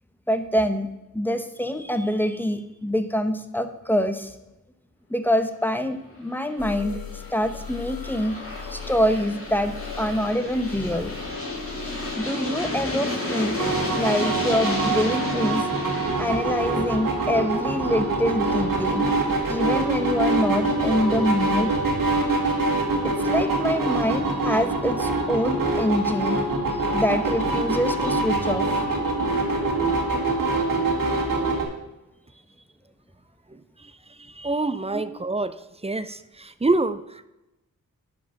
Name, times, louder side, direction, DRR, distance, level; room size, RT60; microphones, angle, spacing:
voice 1, 0.3-0.9 1.1-4.3 5.1-7.0 7.3-8.4 8.7-11.2 12.2-13.6 13.9-15.6 16.2-19.1 19.5-21.7 23.0-26.4 26.9-28.7 34.9-35.0, equal, 5° left, 8 dB, 0.9 m, -25 dB
Aircraft, 6.3-19.1, left 2 dB, 40° left, 2.5 m, -33 dB
sound 1, 6.6-12.2, left 7 dB, 85° left, 1.3 m, -39 dB
sound 2, 13.6-31.6, right 2 dB, 70° right, 2.0 m, -24 dB
voice 2, 33.5-33.9 34.3-35.5 35.8-37.3, right 2 dB, 20° right, 13 dB, 0.5 m, -27 dB
11.0 x 5.1 x 5.7 m, 0.96 s
cardioid pair, 65°, 34 cm